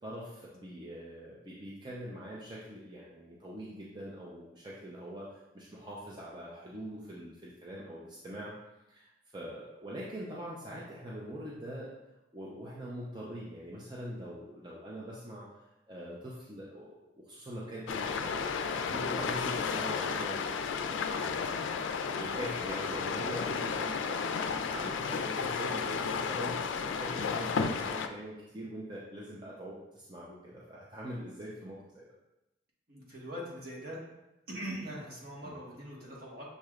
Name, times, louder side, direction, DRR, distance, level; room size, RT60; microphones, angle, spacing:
voice 1, 0.0-8.5 8.9-9.0 9.3-12.0 12.3-15.5 15.9-16.9 17.3-32.0 35.4-35.5, right 1 dB, 25° right, -6 dB, 0.6 m, -43 dB
sound 1, 17.9-28.1, left 5 dB, 90° left, 0.3 m, -33 dB
voice 2, 32.9-34.0 34.5-36.4, equal, 55° right, -5 dB, 1.3 m, -42 dB
6.5 x 3.2 x 2.4 m, 0.94 s
head